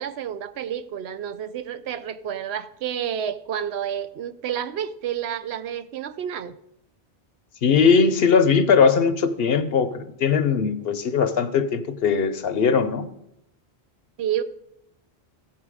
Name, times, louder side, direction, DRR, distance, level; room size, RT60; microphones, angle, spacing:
voice 1, 0.0-6.6 14.2-14.4, right 9 dB, 75° right, 13 dB, 0.9 m, -30 dB
voice 2, 7.6-13.1, left 5 dB, 65° left, 11 dB, 0.9 m, -20 dB
15.5 x 5.7 x 4.8 m, 0.82 s
omnidirectional pair, 1.1 m